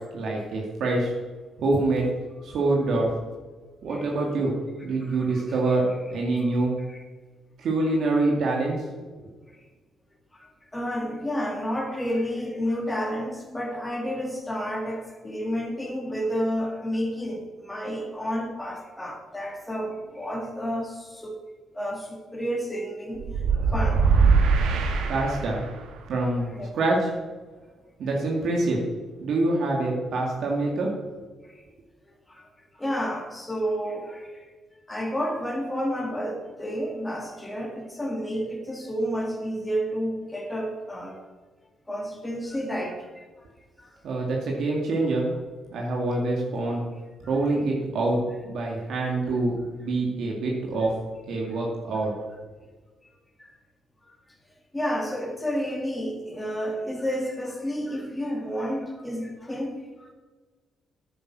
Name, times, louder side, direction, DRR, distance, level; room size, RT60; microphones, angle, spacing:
voice 1, 0.1-1.1 1.6-2.0 2.4-3.1 3.8-4.5 4.8-6.7 7.6-8.8 25.1-25.6 26.1-27.1 28.0-28.8 29.2-30.9 44.0-45.3 45.7-46.8 47.3-48.2 48.4-50.9 51.3-52.1, right 2 dB, 70° right, -2 dB, 2.3 m, -25 dB
voice 2, 5.0-5.8 6.3-6.5 6.9-7.0 10.3-21.3 21.7-23.3 23.6-24.0 26.5-26.7 32.3-32.4 32.7-34.4 34.9-41.2 41.9-43.2 43.8-44.2 53.4-53.5 54.7-60.1, equal, 10° left, 0 dB, 2.4 m, -31 dB
sound 1, 23.2-25.8, right 5 dB, 85° right, 1.7 m, -22 dB
10.0 x 9.4 x 6.3 m, 1.3 s
cardioid pair, 90°, 0 cm